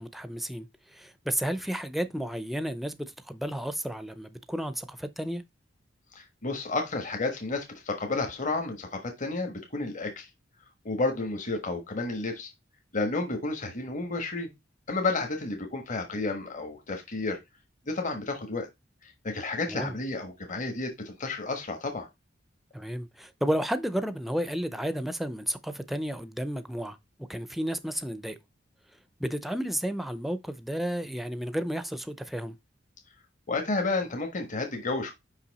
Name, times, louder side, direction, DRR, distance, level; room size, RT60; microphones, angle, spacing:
voice 1, 0.0-5.4 19.7-19.9 22.7-27.0 27.3-28.4 29.2-32.6, equal, ahead, 0.5 m, -32 dB
voice 2, 6.1-10.3 10.8-12.5 12.9-14.5 14.9-17.4 17.9-18.7 19.0-22.1 33.5-35.1, left 3 dB, 40° left, 1.3 m, -31 dB
5.7 x 5.3 x 4.1 m
head